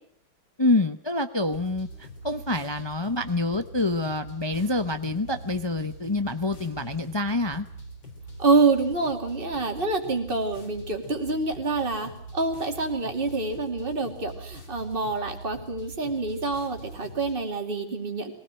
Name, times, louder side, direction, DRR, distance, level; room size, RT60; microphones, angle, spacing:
voice 1, 0.6-7.7, left 2 dB, 30° left, 9 dB, 0.5 m, -27 dB
sound 1, 1.4-17.4, right 2 dB, 70° left, 4.6 m, -43 dB
voice 2, 8.4-18.3, right 3 dB, 30° right, 3 dB, 2.7 m, -26 dB
22.5 x 17.0 x 8.9 m, 0.64 s
omnidirectional pair, 2.1 m